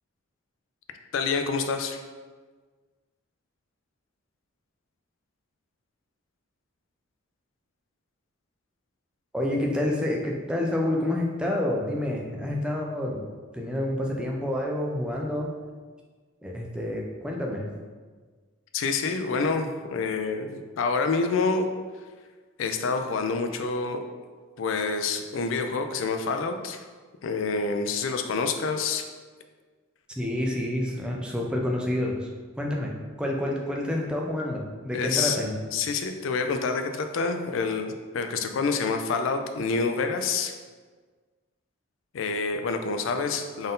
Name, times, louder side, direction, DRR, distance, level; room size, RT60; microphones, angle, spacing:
voice 1, 1.1-2.0 18.7-21.7 22.6-24.0 24.6-26.8 27.2-29.0 34.9-35.4 35.7-40.5 42.1-43.7, left 4 dB, 65° left, 6 dB, 0.3 m, -27 dB
voice 2, 9.3-13.2 13.5-15.5 16.4-17.6 30.2-32.3 32.6-35.5, left 1 dB, 5° right, -1 dB, 0.4 m, -28 dB
3.8 x 2.6 x 3.7 m, 1.5 s
head